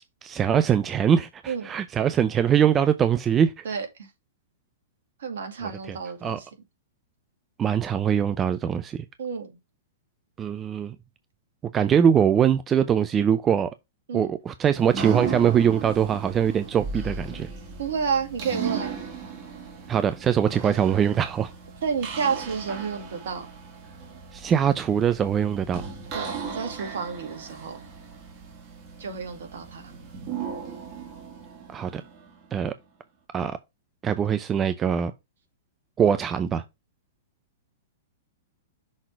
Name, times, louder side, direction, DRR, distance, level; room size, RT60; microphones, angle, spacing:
voice 1, 0.2-3.6 6.2-6.4 7.6-9.0 10.4-10.9 11.7-13.7 14.1-17.5 19.9-21.5 24.3-25.9 31.7-32.0 32.5-32.7 33.3-33.6 34.0-35.1 36.0-36.6, right 8 dB, 20° right, 0.5 m, -22 dB
voice 2, 3.6-4.1 5.2-6.5 9.2-9.5 14.1-14.4 17.8-19.0 21.8-23.5 26.1-27.9 29.0-29.9, right 6 dB, 65° right, 2.3 m, -30 dB
sound 1, 14.7-32.6, right 6 dB, 40° right, 2.6 m, -37 dB
6.4 x 3.8 x 4.7 m
figure-of-eight pair, 105°, 0 cm